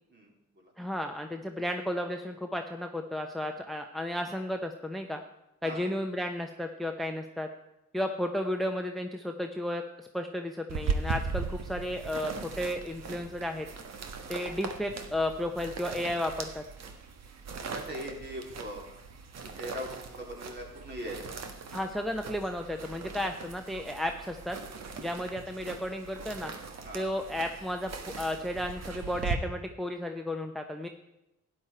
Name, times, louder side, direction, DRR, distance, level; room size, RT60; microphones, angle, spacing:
voice 1, 0.8-5.2 5.6-7.5 7.9-13.7 14.3-16.6 21.7-24.6 25.0-26.5 26.9-27.9 28.2-30.9, left 1 dB, ahead, 5 dB, 0.8 m, -33 dB
voice 2, 5.6-5.9 14.2-14.4 17.7-18.8 19.6-21.2 26.8-27.0, equal, 35° right, 0 dB, 3.5 m, -40 dB
sound 1, 10.7-29.4, right 5 dB, 60° right, 1.5 m, -39 dB
12.5 x 10.0 x 4.4 m, 0.90 s
cardioid pair, 90°, 30 cm